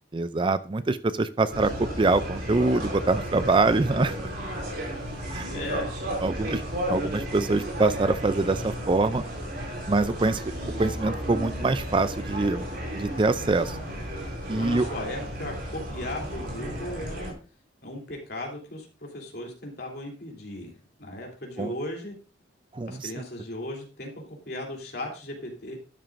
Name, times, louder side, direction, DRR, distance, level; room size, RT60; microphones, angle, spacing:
voice 1, 0.1-4.3 5.3-5.5 6.2-6.6 6.9-9.2 9.9-10.4 10.8-12.6 12.9-13.8 14.5-14.9 21.6-21.7 22.7-23.1, right 3 dB, 25° right, 13 dB, 0.4 m, -24 dB
sound 1, 1.5-17.3, equal, 55° right, 4.2 m, -33 dB
voice 2, 5.5-5.9 14.5-17.3 17.8-20.7 21.0-22.1 22.9-25.8, left 1 dB, 55° left, 0 dB, 3.2 m, -36 dB
12.0 x 10.5 x 2.6 m, 0.35 s
head